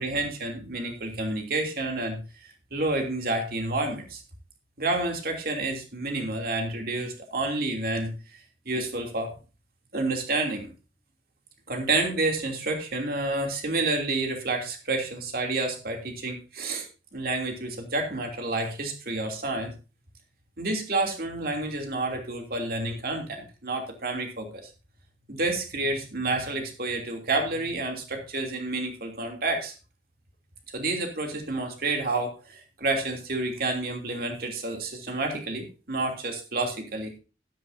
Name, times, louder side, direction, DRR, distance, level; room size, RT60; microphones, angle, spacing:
voice 1, 0.0-2.2 2.7-4.2 4.8-8.1 8.7-9.3 9.9-10.7 11.7-16.9 17.1-19.7 20.6-24.6 25.3-29.7 30.7-37.1, right 2 dB, 55° right, 3 dB, 3.0 m, -29 dB
12.5 x 12.5 x 2.8 m, 0.32 s
head